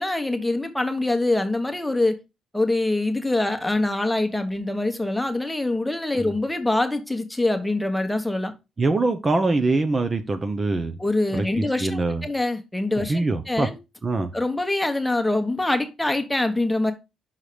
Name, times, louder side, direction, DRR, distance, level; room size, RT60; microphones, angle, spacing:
voice 1, 0.0-2.2 2.5-8.5 11.0-13.8 14.3-16.9, left 2 dB, 5° left, 1.2 m, -24 dB
voice 2, 8.8-11.0 11.3-12.2 13.1-13.7 14.0-14.3, right 3 dB, 30° right, 0.8 m, -23 dB
5.8 x 4.7 x 5.0 m
cardioid pair, 90°, 0 cm